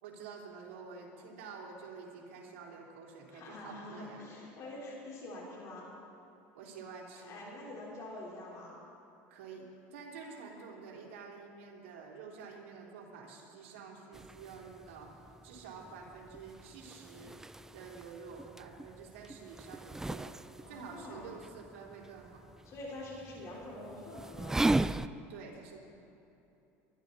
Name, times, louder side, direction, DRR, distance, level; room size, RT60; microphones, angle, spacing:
voice 1, 0.0-4.3 6.5-7.4 9.3-17.3 17.7-22.5 25.3-25.8, right 5 dB, 90° right, -2 dB, 3.4 m, -49 dB
voice 2, 3.3-5.9 7.2-8.8 20.6-21.3 22.6-24.6, left 1 dB, 50° left, -4 dB, 4.1 m, -45 dB
sound 1, 14.1-25.1, right 2 dB, 5° right, 0.3 m, -38 dB
23.5 x 12.0 x 4.1 m, 2.9 s
supercardioid pair, 110°, 7 cm